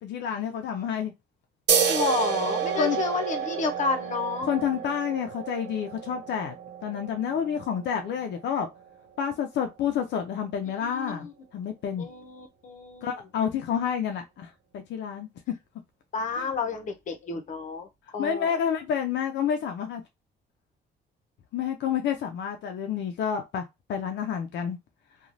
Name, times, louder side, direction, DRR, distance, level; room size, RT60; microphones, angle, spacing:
voice 1, 0.0-1.1 2.8-3.0 4.4-6.6 6.8-8.7 9.2-11.3 11.5-12.1 13.0-15.3 16.3-16.5 18.2-20.0 21.5-23.6 23.9-24.8, left 8 dB, 70° left, 0.5 m, -29 dB
sound 1, 1.7-8.8, right 7 dB, 65° right, 0.7 m, -30 dB
voice 2, 1.9-4.5 10.8-11.3 12.0-13.2 16.1-18.6, left 4 dB, 45° left, 0.8 m, -31 dB
3.1 x 2.3 x 2.5 m
cardioid pair, 150°, 19 cm